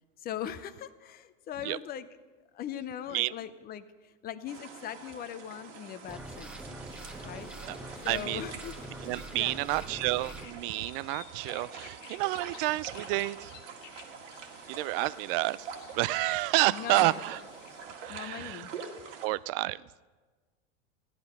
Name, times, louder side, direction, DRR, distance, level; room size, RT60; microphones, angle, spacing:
voice 1, 0.2-2.1 2.5-6.6 7.2-7.5 8.0-8.8 9.3-9.6 16.6-17.2 18.1-18.8, left 10 dB, 25° left, 13 dB, 0.6 m, -40 dB
sound 1, 4.5-19.3, right 6 dB, 90° right, 2.0 m, -45 dB
sound 2, 6.1-10.5, right 1 dB, 5° right, 1.0 m, -44 dB
sound 3, 6.9-17.8, left 9 dB, 85° left, 1.1 m, -54 dB
voice 2, 8.1-8.5 9.0-13.5 14.7-15.7 15.9-17.4 18.0-18.7 19.2-19.8, right 19 dB, 50° right, 20 dB, 0.4 m, -30 dB
15.0 x 10.5 x 5.4 m, 1.3 s
supercardioid pair, 130°, 36 cm